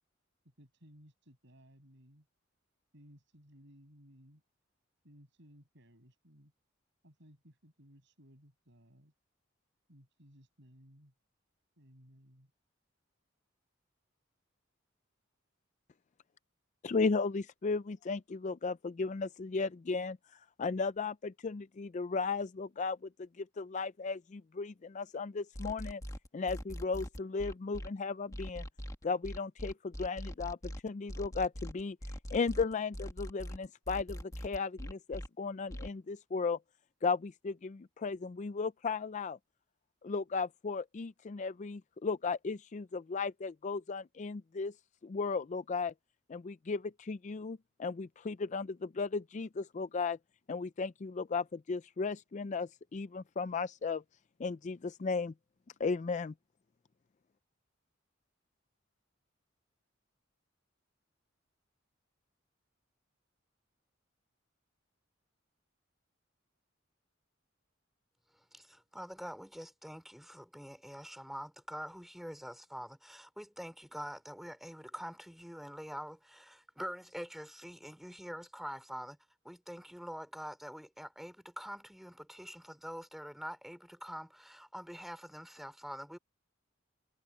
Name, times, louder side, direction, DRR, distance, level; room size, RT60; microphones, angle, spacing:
voice 1, 0.4-2.3 2.9-4.4 5.0-6.5 7.0-9.1 9.9-11.1 11.8-12.5, equal, 65° right, 6.9 m, -60 dB
voice 2, 16.8-20.2 20.6-26.0 26.3-28.6 29.0-32.0 32.3-36.6 37.0-39.4 40.0-44.7 45.0-45.9 46.3-50.2 50.5-54.0 54.4-55.3 55.8-56.3, left 4 dB, 35° left, 0.4 m, -35 dB
sound 1, 25.5-27.9 28.3-35.3 35.7-35.9, equal, 15° left, 1.8 m, -42 dB
voice 3, 68.3-79.2 79.4-86.2, equal, ahead, 4.0 m, -45 dB
head